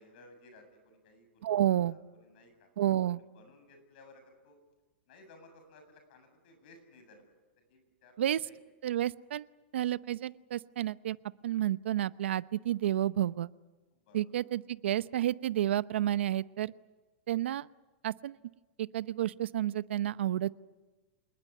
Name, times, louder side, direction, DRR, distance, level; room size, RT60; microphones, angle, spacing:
voice 1, 0.0-1.4 1.9-2.7 3.2-4.6 5.1-7.2 7.7-8.1 8.4-8.6 14.1-14.3, left 2 dB, 50° left, 7 dB, 7.5 m, -58 dB
voice 2, 1.4-2.0 2.8-3.2 8.2-8.5 8.8-9.5 9.7-11.2 11.4-13.5 14.1-16.7 17.3-17.7 18.0-18.4 18.8-20.5, right 12 dB, 80° right, 16 dB, 0.8 m, -30 dB
27.0 x 20.0 x 9.6 m, 1.2 s
supercardioid pair, 165°, 6 cm